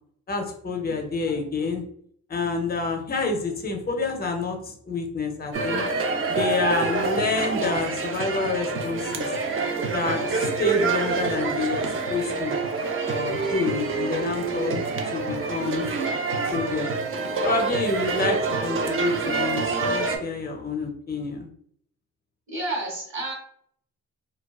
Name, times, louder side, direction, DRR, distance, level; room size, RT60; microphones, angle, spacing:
voice 1, 0.3-1.8 2.3-5.8 6.3-9.4 9.9-12.6 13.0-15.9 16.5-16.9 17.4-21.5, left 4 dB, 25° left, 3 dB, 0.5 m, -28 dB
sound 1, 5.5-20.2, right 4 dB, 40° right, 0.4 m, -27 dB
voice 2, 22.5-23.3, right 2 dB, 55° right, -3 dB, 1.2 m, -30 dB
3.5 x 2.3 x 2.3 m, 0.64 s
wide cardioid pair, 135°, 35 cm